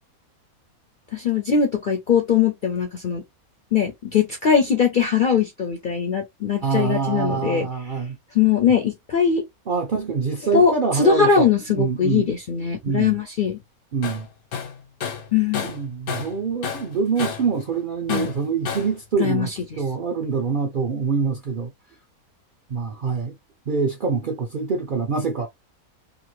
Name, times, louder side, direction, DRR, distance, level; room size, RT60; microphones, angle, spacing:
voice 1, 1.1-3.2 3.7-7.7 8.3-9.4 10.5-13.6 15.3-15.7 18.1-18.3 19.2-19.5, left 7 dB, 55° left, 0.5 m, -21 dB
voice 2, 6.6-8.2 9.7-12.3 12.8-13.1 13.9-14.3 15.6-21.7 22.7-23.4 23.7-25.5, right 5 dB, 60° right, 0.5 m, -25 dB
Tools, 14.0-14.2 14.5-16.4 16.6-17.5 18.1-19.0, left 6 dB, 85° left, 1.3 m, -30 dB
2.7 x 2.5 x 3.0 m
omnidirectional pair, 1.5 m